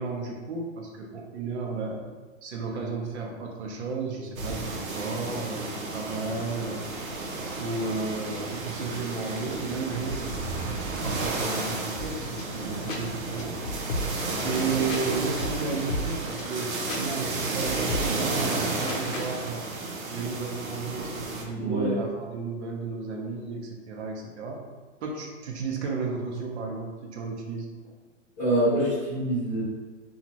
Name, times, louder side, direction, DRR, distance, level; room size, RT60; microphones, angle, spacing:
voice 1, 0.0-2.0 2.4-6.9 7.6-13.5 14.4-19.6 20.1-24.6 25.0-27.7, right 4 dB, 55° right, 0 dB, 0.7 m, -33 dB
sound 1, 4.4-21.4, right 3 dB, 85° right, 0.8 m, -32 dB
sound 2, 12.0-19.3, left 1 dB, 70° left, 0.7 m, -36 dB
voice 2, 21.5-22.0 28.4-29.6, right 1 dB, 15° left, -14 dB, 0.4 m, -25 dB
2.9 x 2.4 x 2.7 m, 1.3 s
hypercardioid pair, 155°, 40 cm